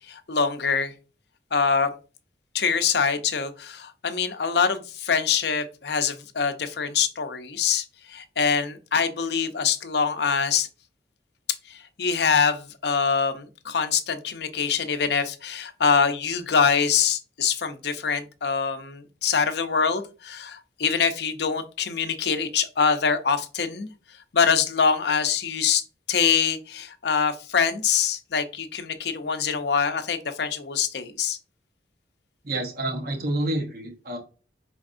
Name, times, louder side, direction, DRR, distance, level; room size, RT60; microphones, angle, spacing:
voice 1, 0.1-0.9 1.5-1.9 2.5-10.7 11.7-23.9 24.3-25.8 26.1-31.4, left 6 dB, 60° left, 8 dB, 0.6 m, -24 dB
voice 2, 32.4-34.2, right 1 dB, 55° right, 3 dB, 1.0 m, -28 dB
5.1 x 3.4 x 2.5 m, 0.33 s
head